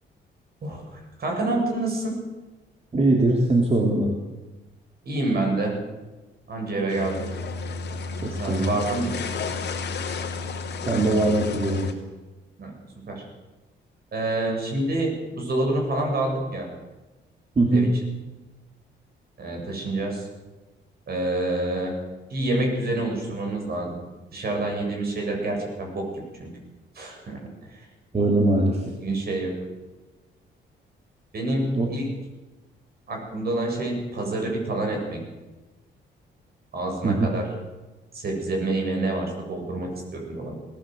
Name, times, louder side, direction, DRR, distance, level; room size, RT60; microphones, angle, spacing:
voice 1, 0.6-2.2 5.0-5.8 6.5-7.3 8.4-9.1 12.6-12.7 13.1-13.2 14.1-16.7 17.7-17.9 19.4-20.3 21.1-22.0 22.3-24.0 24.3-26.5 26.9-27.9 29.0-29.5 31.3-32.1 33.1-35.2 36.7-37.5 38.1-40.5, right 2 dB, 50° right, 1 dB, 7.9 m, -27 dB
voice 2, 2.9-4.1 8.2-8.8 10.9-11.9 17.5-17.9 28.1-28.9 31.7-31.9 37.0-37.3, right 2 dB, 30° right, 1 dB, 3.4 m, -21 dB
sound 1, 6.9-11.9, left 4 dB, 60° left, 3.2 m, -32 dB
20.5 x 16.0 x 8.0 m, 1.2 s
cardioid pair, 90°, 20 cm